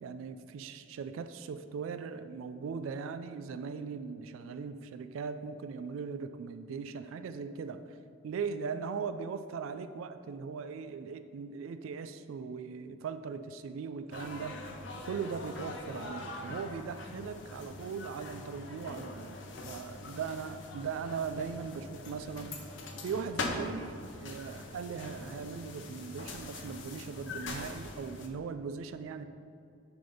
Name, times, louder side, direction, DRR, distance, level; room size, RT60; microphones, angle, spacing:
voice 1, 0.0-8.0 8.2-14.6 15.1-19.4 19.6-22.5 23.0-29.2, right 5 dB, 80° right, 9 dB, 0.3 m, -39 dB
sound 1, 14.1-28.3, left 2 dB, 60° left, 0.8 m, -42 dB
9.1 x 3.5 x 5.3 m, 2.6 s
head